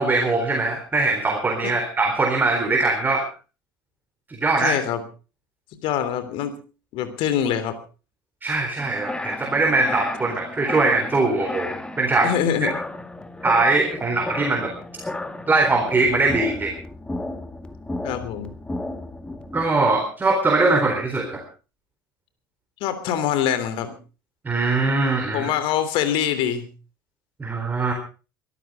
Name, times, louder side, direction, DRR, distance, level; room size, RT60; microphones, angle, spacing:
voice 1, 0.0-3.3 4.3-4.8 8.4-12.3 13.4-14.7 15.5-16.8 19.5-21.4 24.4-25.5 27.4-27.9, right 3 dB, 15° right, 3 dB, 4.0 m, -21 dB
voice 2, 4.6-5.0 5.8-6.5 6.9-7.8 12.2-12.7 18.0-18.5 22.8-23.9 25.3-26.7, left 9 dB, 50° left, 11 dB, 3.2 m, -24 dB
sound 1, 8.8-19.7, left 2 dB, 10° left, 2.1 m, -33 dB
23.5 x 13.5 x 3.7 m, 0.35 s
figure-of-eight pair, 70°, 11 cm